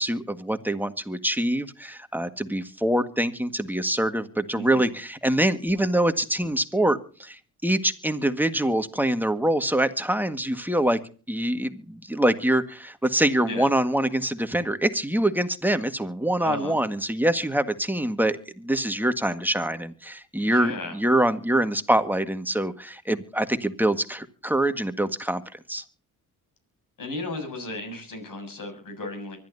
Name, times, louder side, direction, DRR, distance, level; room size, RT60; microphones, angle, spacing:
voice 1, 0.0-11.0 11.3-25.8, right 1 dB, 5° right, 9 dB, 1.7 m, -25 dB
voice 2, 4.6-4.9 13.4-13.7 16.4-16.8 20.4-21.0 27.0-29.4, left 2 dB, 60° left, 6 dB, 7.4 m, -35 dB
24.5 x 12.0 x 2.7 m, 0.40 s
supercardioid pair, 60°, 36 cm